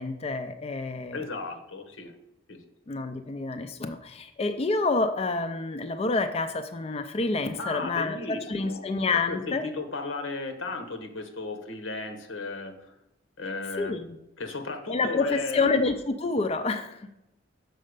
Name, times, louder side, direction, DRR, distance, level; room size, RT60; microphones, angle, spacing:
voice 1, 0.0-1.2 2.9-9.6 13.8-14.1 14.9-17.2, left 3 dB, 30° left, 7 dB, 0.4 m, -28 dB
voice 2, 1.1-2.1 2.5-2.6 7.6-8.9 9.1-12.8 13.4-14.0 14.4-15.9, left 3 dB, 90° left, 6 dB, 1.1 m, -35 dB
6.5 x 4.2 x 6.6 m, 0.88 s
head